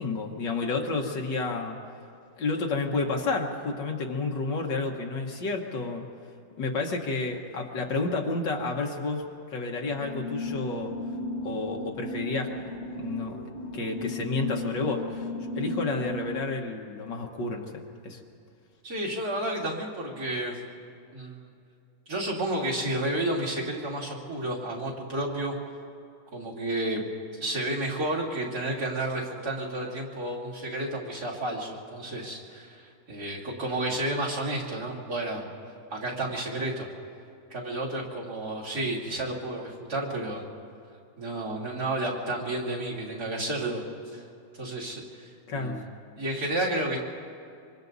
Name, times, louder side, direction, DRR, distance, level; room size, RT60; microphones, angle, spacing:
voice 1, 0.0-1.8 2.4-6.1 6.6-9.2 9.5-10.9 11.4-12.6 13.0-13.4 13.7-15.3 15.6-17.7 18.0-18.2 45.5-45.8, left 3 dB, 65° left, 1 dB, 2.1 m, -30 dB
sound 1, 9.8-16.5, left 1 dB, 40° left, 1.2 m, -35 dB
voice 2, 18.8-20.6 21.1-21.5 22.1-25.6 26.3-27.0 27.4-35.5 35.9-36.9 37.5-40.4 41.2-43.8 44.1-44.2 44.6-45.8 46.2-47.0, right 1 dB, 50° right, -5 dB, 3.6 m, -31 dB
25.5 x 25.0 x 4.1 m, 2.5 s
omnidirectional pair, 2.2 m